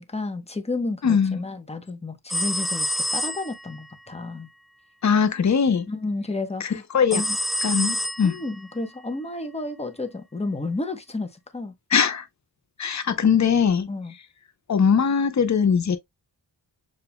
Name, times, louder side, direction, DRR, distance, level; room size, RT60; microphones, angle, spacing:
voice 1, 0.0-4.5 5.9-6.8 7.1-7.4 8.2-11.7 13.9-14.1, left 2 dB, 15° left, 1.0 m, -31 dB
voice 2, 1.0-1.4 5.0-5.9 6.6-7.2 7.6-8.3 11.9-12.2 12.8-13.9 14.7-16.0, left 6 dB, 45° left, 0.9 m, -21 dB
sound 1, 2.3-3.7 7.1-8.6, left 1 dB, ahead, 0.5 m, -27 dB
7.0 x 2.7 x 2.2 m
wide cardioid pair, 90°, 40 cm